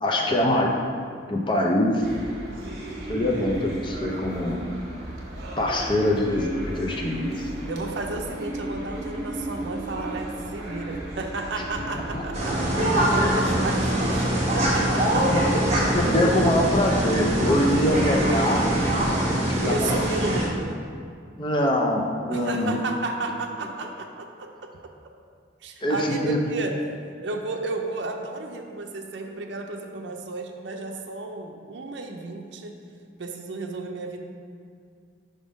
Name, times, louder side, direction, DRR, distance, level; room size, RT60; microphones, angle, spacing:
voice 1, 0.0-0.7 1.3-2.1 3.1-4.6 5.6-7.5 11.9-12.2 13.0-13.3 15.1-15.6 15.9-18.7 19.3-20.0 21.4-22.8 25.8-26.4, left 1 dB, 25° left, -1 dB, 0.5 m, -24 dB
sound 1, 2.0-19.3, right 1 dB, 55° right, 1.0 m, -35 dB
voice 2, 7.7-12.7 13.1-15.5 19.6-20.8 22.3-24.7 25.6-27.0 27.2-32.7 33.2-34.2, right 3 dB, 70° right, 2 dB, 0.5 m, -33 dB
sound 2, 12.3-20.5, right 1 dB, 35° right, 1.2 m, -23 dB
5.2 x 3.6 x 5.2 m, 2.2 s
head